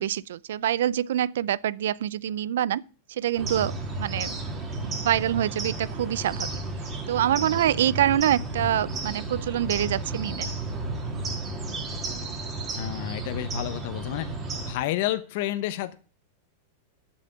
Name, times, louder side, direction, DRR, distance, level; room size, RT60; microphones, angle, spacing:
voice 1, 0.0-2.8 3.1-3.7 4.0-4.4 4.8-6.5 7.1-10.5, right 11 dB, 80° right, 0.4 m, -25 dB
sound 1, 3.4-14.7, right 2 dB, 20° right, 2.6 m, -33 dB
voice 2, 12.8-14.3 14.7-15.9, left 13 dB, 55° left, 0.9 m, -30 dB
7.5 x 7.1 x 8.1 m
supercardioid pair, 145°, 0 cm